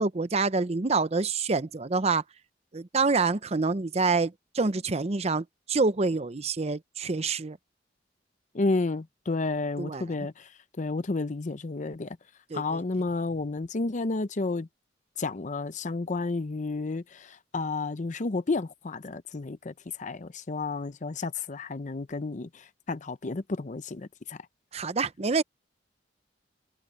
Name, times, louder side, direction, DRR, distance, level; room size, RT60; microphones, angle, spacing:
voice 1, 0.0-2.2 2.7-7.6 9.8-10.3 12.5-12.8 24.7-25.4, right 4 dB, 35° right, 0.7 m, -27 dB
voice 2, 8.5-10.5 10.8-12.2 12.5-14.7 15.2-19.7 20.0-24.4, left 3 dB, 45° left, 0.6 m, -31 dB
head